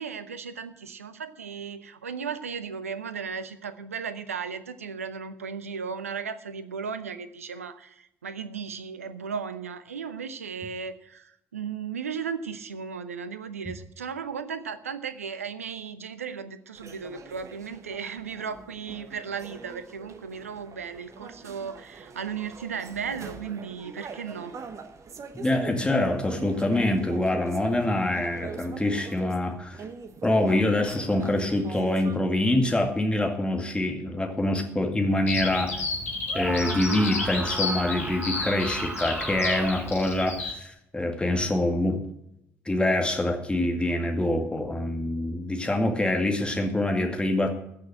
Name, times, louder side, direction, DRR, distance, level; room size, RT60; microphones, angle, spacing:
voice 1, 0.0-24.6, right 6 dB, 80° right, 12 dB, 0.6 m, -36 dB
sound 1, 16.8-32.2, right 4 dB, 40° right, 1.3 m, -42 dB
voice 2, 25.3-29.8 30.2-35.8 36.3-42.0 42.7-47.5, left 1 dB, 15° left, 3 dB, 2.1 m, -25 dB
Bird vocalization bird call bird song, 35.3-40.5, left 3 dB, 80° left, 1.6 m, -32 dB
Screaming, 36.3-40.1, right 2 dB, 20° right, 1.4 m, -36 dB
15.0 x 6.4 x 7.7 m, 0.78 s
figure-of-eight pair, 45°, 8 cm